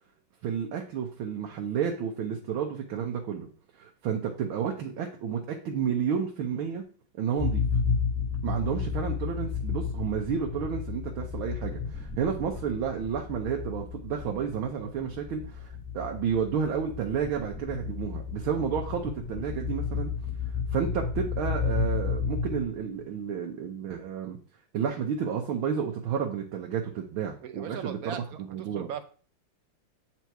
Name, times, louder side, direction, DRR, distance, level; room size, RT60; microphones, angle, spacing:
voice 1, 0.4-3.5 3.8-6.8 7.2-7.6 8.4-20.1 20.7-24.4 24.7-28.2 28.5-28.9, right 7 dB, 85° right, 2 dB, 1.8 m, -31 dB
sound 1, 7.4-23.0, left 5 dB, 5° left, 1.0 m, -32 dB
voice 2, 27.4-29.0, right 8 dB, 65° right, 9 dB, 0.9 m, -38 dB
8.2 x 4.5 x 4.6 m, 0.40 s
omnidirectional pair, 2.2 m